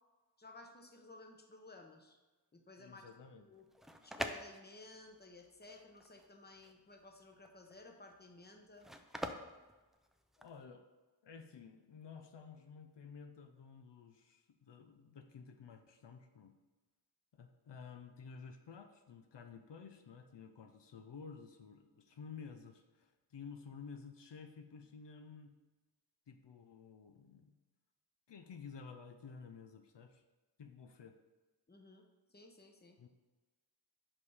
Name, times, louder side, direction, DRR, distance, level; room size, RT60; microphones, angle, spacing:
voice 1, 0.4-2.2 2.5-3.0 3.4-3.7 4.0-8.9 31.7-33.0, left 2 dB, 25° left, 3 dB, 0.9 m, -56 dB
voice 2, 2.8-3.5 10.4-10.9 11.2-16.6 17.3-25.5 26.3-27.5 28.3-30.2 30.6-31.2 33.0-33.1, left 5 dB, 85° left, 6 dB, 0.6 m, -53 dB
sound 1, 3.6-10.6, equal, ahead, 0.4 m, -46 dB
5.5 x 5.0 x 4.8 m, 1.2 s
wide cardioid pair, 80°, 42 cm